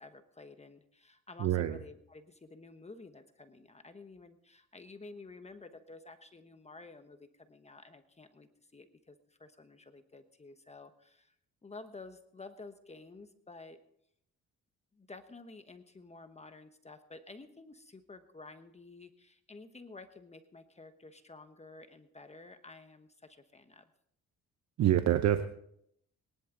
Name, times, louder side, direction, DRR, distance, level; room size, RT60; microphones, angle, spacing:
voice 1, 0.0-11.3 11.6-13.8 14.9-23.9, left 3 dB, 20° left, 8 dB, 1.1 m, -51 dB
voice 2, 1.4-1.8 24.8-25.5, right 11 dB, 60° right, 10 dB, 0.8 m, -26 dB
22.0 x 11.0 x 3.9 m, 0.73 s
cardioid pair, 90°, 30 cm